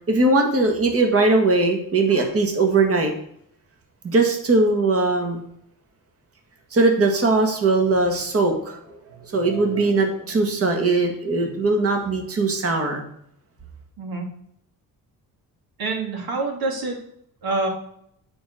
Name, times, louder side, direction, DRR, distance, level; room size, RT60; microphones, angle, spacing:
voice 1, 0.1-3.1 4.0-5.4 6.7-13.0, right 3 dB, 40° right, 3 dB, 1.9 m, -20 dB
voice 2, 15.8-17.0 17.4-17.7, right 3 dB, 75° right, 1 dB, 3.0 m, -26 dB
8.7 x 5.2 x 6.2 m, 0.69 s
cardioid pair, 135°, 36 cm